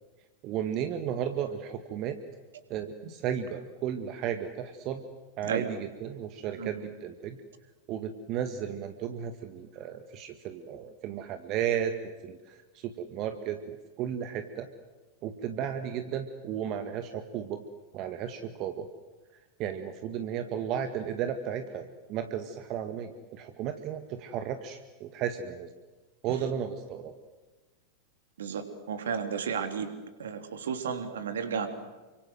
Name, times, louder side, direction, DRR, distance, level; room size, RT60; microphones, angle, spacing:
voice 1, 0.4-2.2 2.7-5.0 5.4-7.4 7.9-14.7 15.2-17.6 17.9-18.9 19.6-25.7 26.2-27.1, right 9 dB, 40° right, 8 dB, 1.9 m, -34 dB
voice 2, 28.4-29.9 30.2-31.7, right 6 dB, 65° right, 8 dB, 3.4 m, -33 dB
29.5 x 25.5 x 7.9 m, 1.2 s
figure-of-eight pair, 90°, 0 cm